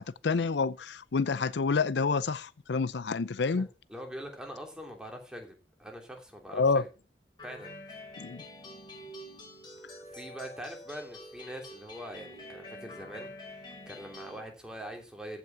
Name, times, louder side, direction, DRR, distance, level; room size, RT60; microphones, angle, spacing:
voice 1, 0.0-3.7 6.5-6.8 8.2-8.5, left 4 dB, 75° left, 0.5 m, -28 dB
voice 2, 3.5-6.9 7.4-7.7 10.1-13.3 13.9-15.4, equal, 5° right, 3.0 m, -43 dB
sound 1, 7.4-14.4, left 1 dB, 25° left, 4.2 m, -47 dB
15.0 x 6.0 x 5.8 m
head